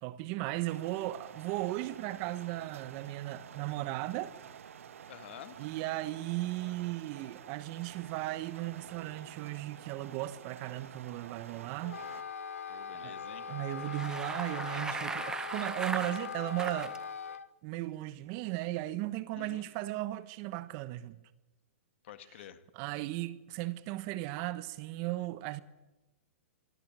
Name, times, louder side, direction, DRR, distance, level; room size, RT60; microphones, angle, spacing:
voice 1, 0.0-4.3 5.6-12.0 13.0-13.2 13.5-17.0 17.6-21.2 22.7-25.6, right 16 dB, 40° right, 1.1 m, -36 dB
sound 1, 0.7-12.2, right 8 dB, 75° right, 1.3 m, -50 dB
voice 2, 5.1-5.6 12.7-13.5 19.3-19.7 22.0-22.6, left 11 dB, 60° left, 1.8 m, -49 dB
Wind instrument woodwind instrument, 11.8-17.5, left 6 dB, 90° left, 1.0 m, -41 dB
Bicycle, 13.7-17.0, right 4 dB, 10° right, 0.8 m, -39 dB
23.0 x 14.0 x 9.0 m
hypercardioid pair, 140°, 7 cm